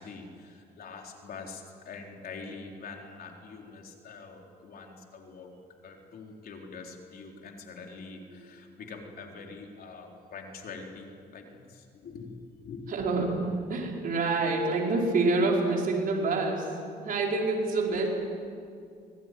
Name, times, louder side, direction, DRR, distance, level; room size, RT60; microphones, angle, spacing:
voice 1, 0.0-5.5 5.8-12.4 12.6-12.9, left 4 dB, 65° left, 1 dB, 4.1 m, -44 dB
voice 2, 12.9-16.7 17.0-18.1, right 3 dB, 55° right, -1 dB, 4.9 m, -27 dB
24.5 x 19.0 x 9.5 m, 2.4 s
cardioid pair, 110°, 17 cm